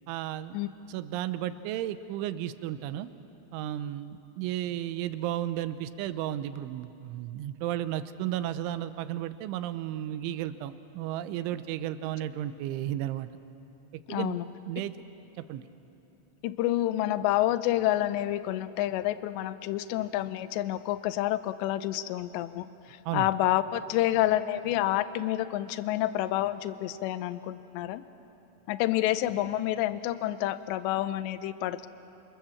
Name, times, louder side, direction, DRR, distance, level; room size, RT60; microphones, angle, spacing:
voice 1, 0.1-0.6 0.9-3.1 3.5-13.3 14.1-14.4 14.7-14.9 15.4-15.7 23.1-23.3, right 12 dB, 85° right, 12 dB, 3.2 m, -33 dB
voice 2, 14.1-14.4 16.4-28.0 28.7-31.9, left 14 dB, 80° left, 13 dB, 2.8 m, -28 dB
28.5 x 26.5 x 7.2 m, 2.9 s
omnidirectional pair, 5.5 m